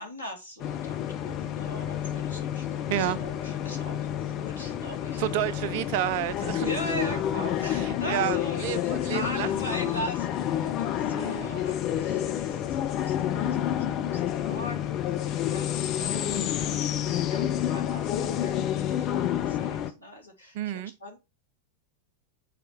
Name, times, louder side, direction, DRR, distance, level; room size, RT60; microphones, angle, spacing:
voice 1, 0.0-5.2 6.6-21.2, equal, 80° left, 2.6 m, -40 dB
sound 1, 0.6-19.9, left 10 dB, 35° left, 1.0 m, -29 dB
voice 2, 5.2-9.5 10.6-10.7 11.1-11.5 20.5-20.9, right 13 dB, 50° right, 0.6 m, -31 dB
7.5 x 4.5 x 6.1 m
figure-of-eight pair, 90°, 0 cm